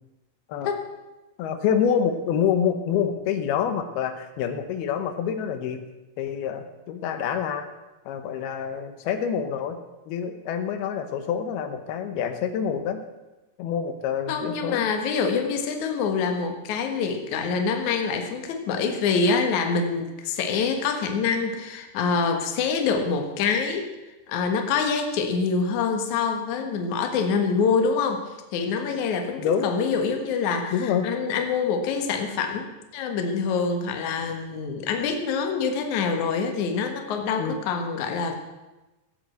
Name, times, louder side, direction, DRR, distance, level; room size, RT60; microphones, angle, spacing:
voice 1, 1.4-5.8 6.2-7.7 8.1-9.8 10.1-13.0 13.6-14.9 29.4-29.7 30.7-31.1 37.4-37.6, left 8 dB, 85° left, 8 dB, 2.9 m, -26 dB
voice 2, 14.3-23.9 24.3-38.4, left 5 dB, 60° left, 5 dB, 2.6 m, -25 dB
16.0 x 8.2 x 7.8 m, 1.1 s
omnidirectional pair, 4.3 m